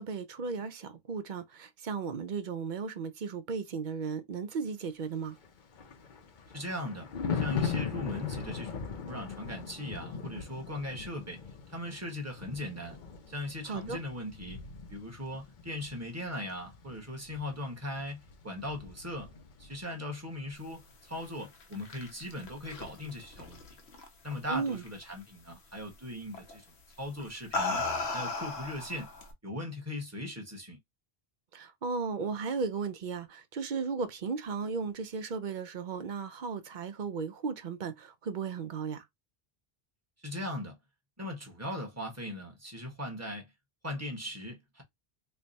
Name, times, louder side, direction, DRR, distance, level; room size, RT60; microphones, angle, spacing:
voice 1, 0.0-5.4 13.7-14.0 24.5-24.8 31.5-39.0, right 5 dB, 55° right, 0.7 m, -35 dB
Thunder, 5.4-19.9 20.2-20.5, left 5 dB, 55° left, 0.8 m, -40 dB
voice 2, 6.5-11.4 11.7-13.0 13.3-14.6 14.9-19.3 19.6-23.6 24.2-26.6 27.0-27.8 28.1-29.1 29.4-30.8 40.2-40.8 41.2-43.5 43.8-44.8, left 1 dB, 15° right, 1.2 m, -39 dB
sound 1, 21.4-24.3 24.7-25.1 26.3-26.6 27.2-29.3, left 3 dB, 85° left, 1.1 m, -35 dB
3.3 x 2.2 x 4.0 m
omnidirectional pair, 1.1 m